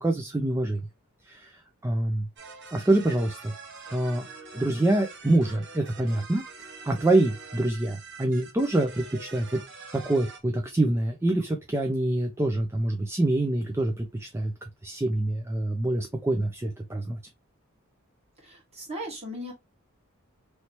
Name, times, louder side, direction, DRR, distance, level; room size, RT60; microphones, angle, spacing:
voice 1, 0.0-0.8 1.2-2.3 2.7-3.5 3.9-4.3 4.5-6.4 6.8-9.6 9.9-14.5 14.8-17.2, right 1 dB, 10° right, 0.4 m, -26 dB
sound 1, 2.4-10.4, right 4 dB, 60° right, 1.0 m, -45 dB
voice 2, 18.4-19.5, equal, 30° right, 1.6 m, -37 dB
3.1 x 2.9 x 2.9 m
head